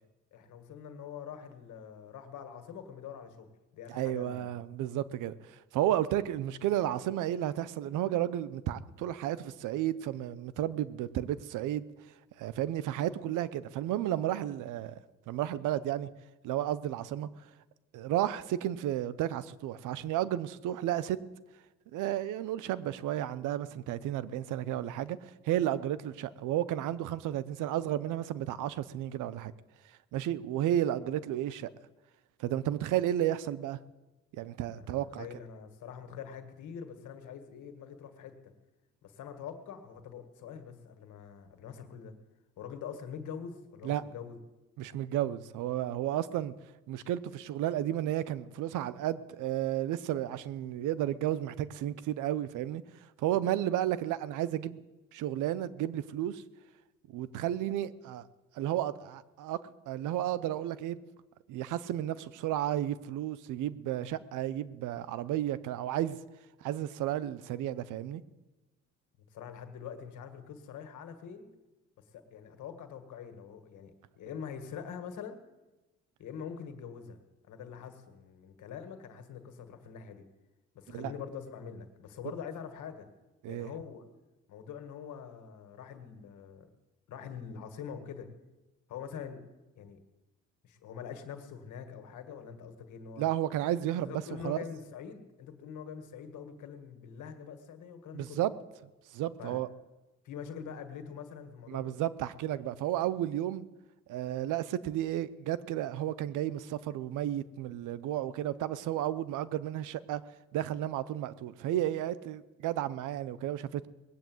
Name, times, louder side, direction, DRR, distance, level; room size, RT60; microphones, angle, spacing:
voice 1, 0.3-4.5 34.7-38.5 39.0-42.1 42.6-44.4 69.3-71.5 72.1-75.4 76.2-80.2 80.8-83.1 83.5-84.0 84.5-86.7 87.1-88.3 88.9-89.4 89.8-90.0 90.6-93.3 94.0-98.4 99.4-99.6 100.2-101.9, left 7 dB, 80° left, 1.8 m, -44 dB
voice 2, 3.9-11.8 12.4-15.0 15.3-16.1 16.4-17.3 17.9-21.2 21.9-29.5 30.1-31.7 32.4-33.8 34.3-35.3 43.8-44.0 44.8-46.5 46.9-52.8 53.2-54.8 55.1-56.4 57.1-58.3 58.5-59.6 59.9-61.0 61.5-66.2 66.6-68.2 80.9-81.1 83.4-83.7 93.2-94.1 94.4-94.6 98.1-98.5 99.1-99.7 101.7-103.7 104.1-110.2 110.5-113.9, right 12 dB, 90° right, 0.7 m, -32 dB
19.5 x 8.1 x 7.8 m
cardioid pair, 90°, 30 cm